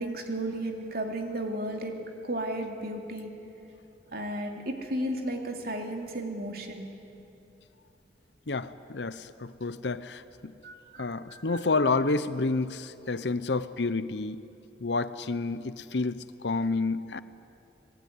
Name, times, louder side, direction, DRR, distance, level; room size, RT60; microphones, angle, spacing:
voice 1, 0.0-3.3 4.1-6.9 10.6-11.1 11.5-11.6, right 1 dB, 55° right, 3 dB, 2.9 m, -34 dB
voice 2, 8.5-10.5 11.0-14.4 14.8-17.2, left 3 dB, 70° left, 14 dB, 0.9 m, -29 dB
25.0 x 20.0 x 9.6 m, 2.9 s
head